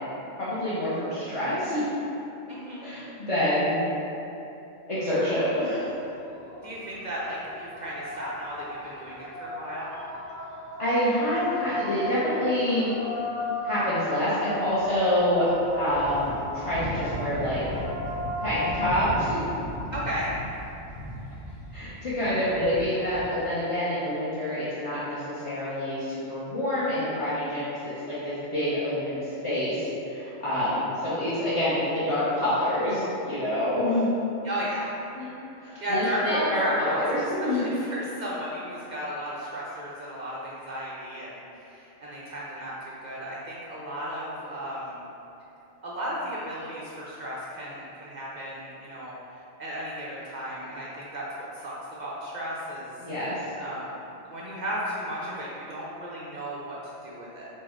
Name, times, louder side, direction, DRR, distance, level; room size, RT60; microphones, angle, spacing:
voice 1, 0.4-1.8 2.8-3.8 4.9-5.8 10.8-12.9 13.6-15.5 15.7-17.6 18.4-19.5 21.7-34.1 35.1-35.3 35.6-37.6 53.0-53.3, left 1 dB, 35° left, -12 dB, 0.6 m, -27 dB
voice 2, 2.5-2.9 6.6-9.9 19.9-20.3 30.5-30.8 34.4-34.9 35.8-45.0 45.8-49.1 49.6-51.3 51.5-52.9 53.6-53.9 54.3-57.5, equal, 65° right, -6 dB, 0.4 m, -34 dB
sound 1, 5.7-23.2, left 1 dB, 50° left, 1.2 m, -36 dB
4.5 x 2.2 x 4.3 m, 2.9 s
omnidirectional pair, 1.4 m